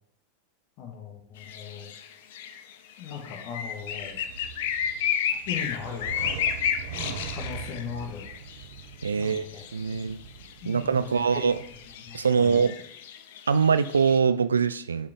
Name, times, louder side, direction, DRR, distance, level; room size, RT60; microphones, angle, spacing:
voice 1, 0.8-1.9 3.0-4.2 5.5-6.1 7.0-8.3 9.1-10.1 10.6-11.5 12.0-12.6, left 7 dB, 45° left, 2 dB, 1.9 m, -38 dB
sound 1, 1.4-14.2, left 8 dB, 60° left, 0.6 m, -33 dB
sound 2, 3.6-12.1, right 8 dB, 60° right, 0.9 m, -42 dB
voice 2, 9.0-10.2 10.6-11.6 12.1-12.8 13.5-15.1, right 6 dB, 80° right, 14 dB, 0.4 m, -23 dB
7.2 x 5.1 x 3.7 m, 0.68 s
figure-of-eight pair, 90°, 0 cm